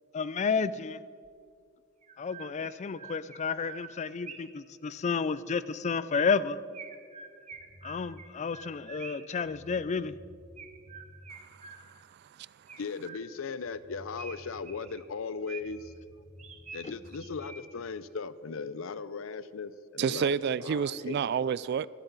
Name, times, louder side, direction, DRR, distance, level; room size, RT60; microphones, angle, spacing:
voice 1, 0.1-1.0 2.2-6.6 7.8-10.2 16.8-16.9, left 5 dB, 35° left, 0.4 m, -31 dB
Chirp tweet, 1.2-1.3 2.0-4.6 6.7-9.4 10.6-12.1 12.7-13.6 14.2-15.9 16.4-17.9, right 5 dB, 35° right, 1.0 m, -48 dB
sound 1, 7.5-8.1 9.1-9.2 9.4-11.1 13.3-13.4 13.7-14.9 15.6-17.3, left 1 dB, 65° left, 3.5 m, -53 dB
voice 2, 11.3-12.5 20.0-21.9, right 7 dB, 55° right, 0.3 m, -31 dB
voice 3, 12.8-15.9 16.7-21.2, left 5 dB, 85° left, 0.5 m, -38 dB
23.5 x 8.2 x 4.0 m
head